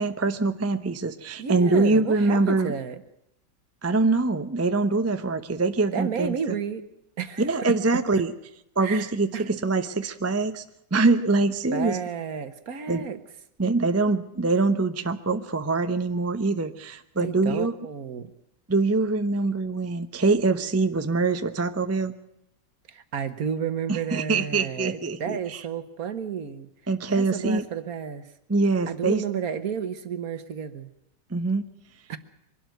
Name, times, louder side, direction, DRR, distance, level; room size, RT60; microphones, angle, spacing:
voice 1, 0.0-2.7 3.8-6.6 7.4-8.3 8.8-10.6 10.9-12.0 12.9-13.0 13.6-17.7 18.7-22.1 23.9-25.6 26.9-27.6 28.5-29.2 31.3-31.7, right 3 dB, 20° right, 9 dB, 0.4 m, -24 dB
voice 2, 1.4-3.0 5.9-6.8 7.2-8.0 8.8-9.5 11.7-13.2 17.2-18.3 22.9-26.7 27.1-28.3 28.9-30.9 32.1-32.2, right 7 dB, 55° right, 12 dB, 1.5 m, -31 dB
23.5 x 12.5 x 9.3 m, 0.79 s
omnidirectional pair, 1.9 m